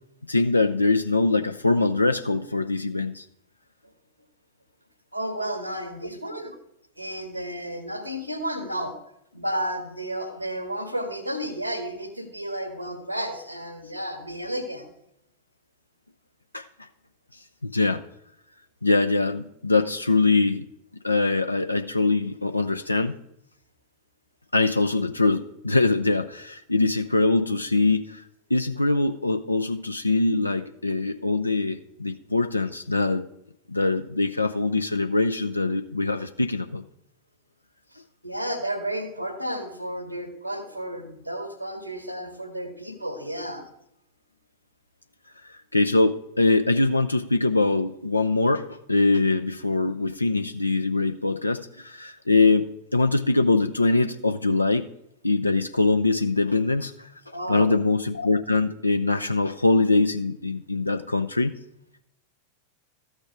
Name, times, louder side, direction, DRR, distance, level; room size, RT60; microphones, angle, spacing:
voice 1, 0.3-3.2 16.5-16.7 17.6-18.0 18.8-20.7 21.0-23.2 24.5-28.2 28.5-33.3 33.7-36.8 45.4-54.9 55.2-57.1 57.5-61.5, left 3 dB, 85° left, 8 dB, 0.4 m, -23 dB
voice 2, 5.1-6.5 7.0-9.0 9.3-14.9 38.2-43.6 57.3-57.7, right 1 dB, 90° right, 7 dB, 1.6 m, -32 dB
13.5 x 6.4 x 4.8 m, 0.79 s
figure-of-eight pair, 90°, 0 cm